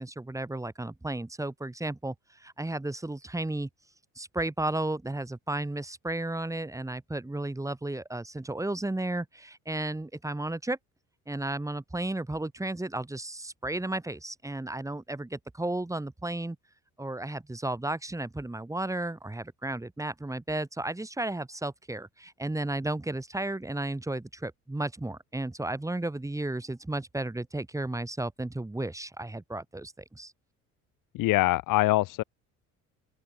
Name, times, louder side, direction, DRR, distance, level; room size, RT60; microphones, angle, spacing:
voice 1, 0.0-3.7 4.1-10.8 11.3-16.6 17.0-30.3, right 2 dB, 10° right, 1.7 m, -33 dB
voice 2, 31.1-32.2, left 18 dB, 65° left, 1.0 m, -24 dB
open air
supercardioid pair, 75°, 34 cm